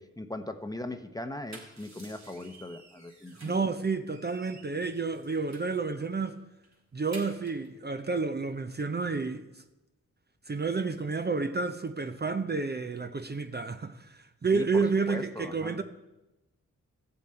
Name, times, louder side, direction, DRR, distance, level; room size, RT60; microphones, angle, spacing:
voice 1, 0.0-3.6 14.5-15.8, left 1 dB, 10° left, 0.8 m, -39 dB
sound 1, 1.2-3.7 4.1-5.8 6.2-6.3 6.6-7.7, right 2 dB, 60° right, 2.5 m, -51 dB
voice 2, 3.4-6.4 6.9-9.6 10.5-15.8, right 4 dB, 35° right, 0.6 m, -30 dB
14.5 x 7.4 x 4.4 m
cardioid pair, 60°, 31 cm